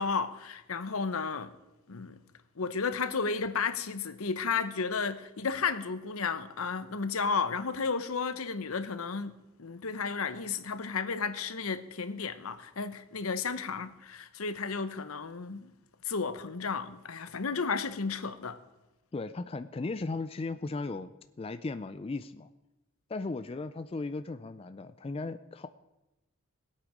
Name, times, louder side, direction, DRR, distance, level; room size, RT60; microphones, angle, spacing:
voice 1, 0.0-1.5 1.9-2.2 2.6-9.3 9.6-15.7 16.0-18.6, left 5 dB, 85° left, 11 dB, 0.9 m, -33 dB
voice 2, 19.1-21.1 21.4-22.5 23.1-25.7, left 3 dB, 25° left, 11 dB, 0.3 m, -36 dB
19.0 x 8.6 x 5.0 m, 1.0 s
head